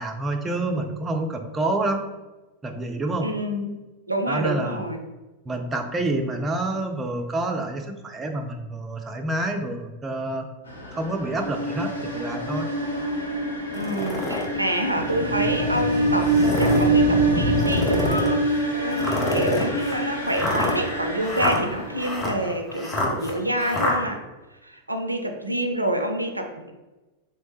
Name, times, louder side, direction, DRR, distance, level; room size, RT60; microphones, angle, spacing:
voice 1, 0.0-2.1 2.6-3.3 4.3-4.8 5.5-10.5 10.9-12.7, right 2 dB, 20° right, 4 dB, 0.4 m, -28 dB
voice 2, 3.2-3.7 4.1-5.0 13.7-24.2 24.6-26.7, right 1 dB, 85° right, 5 dB, 0.4 m, -27 dB
sound 1, 10.7-22.5, right 2 dB, 80° left, 0.9 m, -26 dB
sound 2, 13.7-14.5 15.1-15.2 16.2-16.9 17.6-18.3 19.0-24.0, left 2 dB, 20° left, 0.8 m, -27 dB
sound 3, 14.9-18.7, left 2 dB, 65° left, 1.5 m, -28 dB
3.3 x 3.1 x 3.0 m, 1.1 s
figure-of-eight pair, 90°, 0 cm